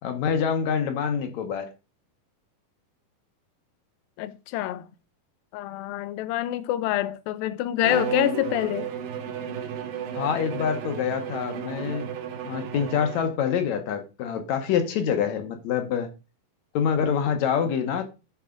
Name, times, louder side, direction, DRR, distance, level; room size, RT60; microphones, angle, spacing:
voice 1, 0.0-1.7 10.1-12.1 12.4-16.1 16.7-18.0, left 7 dB, 65° left, 2.0 m, -26 dB
voice 2, 4.2-4.9 5.5-8.9, left 14 dB, 85° left, 2.4 m, -26 dB
Bowed string instrument, 7.8-13.5, right 9 dB, 80° right, 2.7 m, -33 dB
11.5 x 4.9 x 3.7 m
omnidirectional pair, 4.1 m